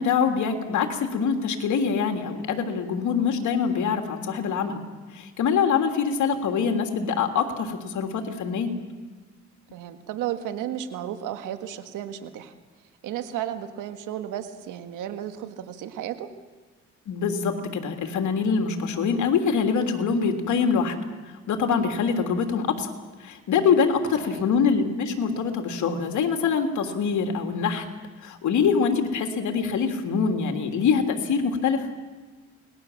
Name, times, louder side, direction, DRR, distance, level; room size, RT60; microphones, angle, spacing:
voice 1, 0.0-4.8 5.1-8.7 17.1-20.9 21.5-22.9 23.2-27.8 28.2-31.9, left 6 dB, 75° left, 5 dB, 3.1 m, -24 dB
voice 2, 9.7-12.5 13.0-16.3 24.3-24.5, right 10 dB, 90° right, 8 dB, 1.8 m, -33 dB
28.5 x 20.0 x 7.3 m, 1.3 s
cardioid pair, 90°, 30 cm